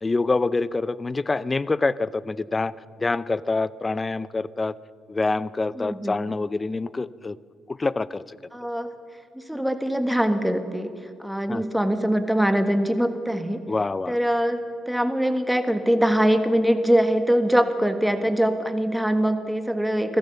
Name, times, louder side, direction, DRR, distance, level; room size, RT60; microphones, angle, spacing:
voice 1, 0.0-2.7 3.0-4.7 5.1-7.4 7.7-8.4 11.5-11.6 13.7-14.2, left 3 dB, 25° left, 18 dB, 0.6 m, -26 dB
voice 2, 5.8-6.1 8.5-8.9 9.3-10.9 11.2-13.6 14.1-14.6 14.9-20.2, equal, 5° right, 8 dB, 1.6 m, -23 dB
25.0 x 15.5 x 6.9 m, 2.3 s
cardioid pair, 90°, 0 cm